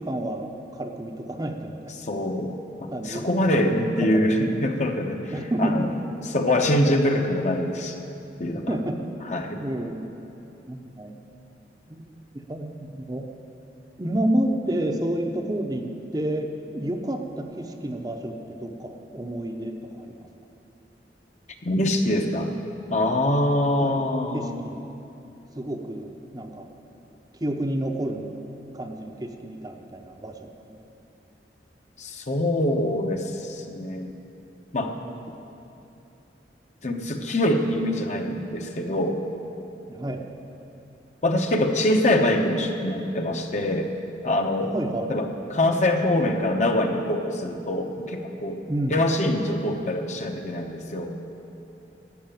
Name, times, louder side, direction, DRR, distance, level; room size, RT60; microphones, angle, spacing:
voice 1, 0.0-1.9 2.9-3.3 3.5-4.3 5.3-5.9 8.7-9.0 9.6-10.1 10.7-11.2 11.9-12.0 12.3-13.3 14.0-20.3 23.8-24.0 24.3-24.8 25.6-26.7 27.4-28.5 28.7-30.5 35.0-35.2 39.9-40.2 44.6-45.1 48.7-49.0, right 1 dB, 20° right, 4 dB, 0.7 m, -30 dB
voice 2, 2.0-2.5 2.8-5.3 5.6-5.9 6.3-8.0 8.4-8.8 9.2-9.6 21.6-22.5 22.9-24.6 32.0-34.2 34.7-34.9 36.8-39.2 41.2-43.9 44.2-44.7 45.1-45.2 45.5-48.6 48.9-51.1, left 1 dB, 40° left, 4 dB, 1.0 m, -24 dB
12.0 x 8.0 x 9.1 m, 2.8 s
head